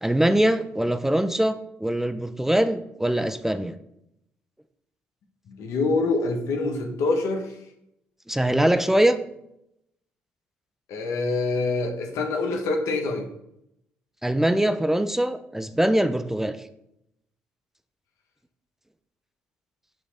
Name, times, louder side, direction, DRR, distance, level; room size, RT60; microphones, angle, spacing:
voice 1, 0.0-3.7 8.3-9.2 14.2-16.6, right 1 dB, 5° right, 10 dB, 0.5 m, -22 dB
voice 2, 5.5-7.5 10.9-13.3, left 3 dB, 70° left, 4 dB, 1.1 m, -25 dB
6.0 x 3.3 x 5.5 m, 0.79 s
hypercardioid pair, 55°, 5 cm